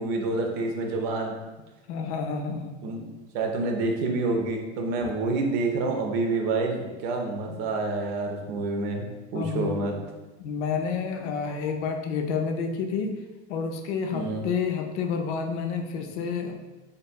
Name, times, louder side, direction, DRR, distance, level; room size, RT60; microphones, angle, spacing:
voice 1, 0.0-1.4 2.8-3.1 3.3-10.0 14.1-14.4, right 3 dB, 65° right, 2 dB, 0.7 m, -28 dB
voice 2, 1.9-2.7 5.0-5.1 9.3-9.9 10.4-13.2 13.5-16.5, left 5 dB, 80° left, 4 dB, 0.5 m, -29 dB
3.9 x 2.6 x 2.2 m, 1.1 s
hypercardioid pair, 80°, 34 cm